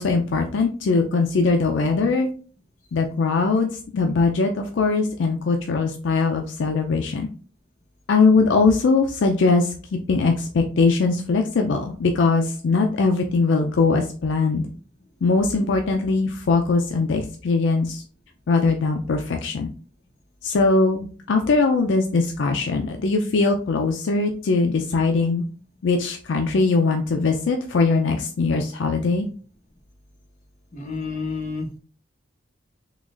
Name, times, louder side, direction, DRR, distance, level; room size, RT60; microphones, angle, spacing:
voice 1, 0.0-2.3 2.9-7.3 8.1-14.7 15.2-18.0 18.5-19.7 20.4-25.4 25.8-29.3, left 3 dB, 75° left, 4 dB, 0.4 m, -21 dB
voice 2, 30.7-31.8, left 4 dB, 45° left, 0 dB, 1.0 m, -30 dB
3.9 x 3.0 x 2.4 m, 0.40 s
head